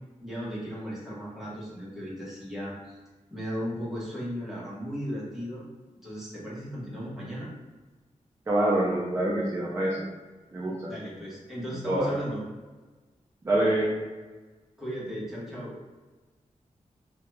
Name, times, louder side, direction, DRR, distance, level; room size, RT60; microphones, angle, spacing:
voice 1, 0.2-3.0 3.3-5.6 6.0-7.5 10.9-12.4 14.8-15.8, equal, 5° right, -8 dB, 0.9 m, -36 dB
voice 2, 8.5-10.1 10.5-10.9 11.9-12.1 13.4-13.9, right 1 dB, 20° right, -4 dB, 0.4 m, -25 dB
2.9 x 2.2 x 3.0 m, 1.3 s
wide cardioid pair, 170°, 13 cm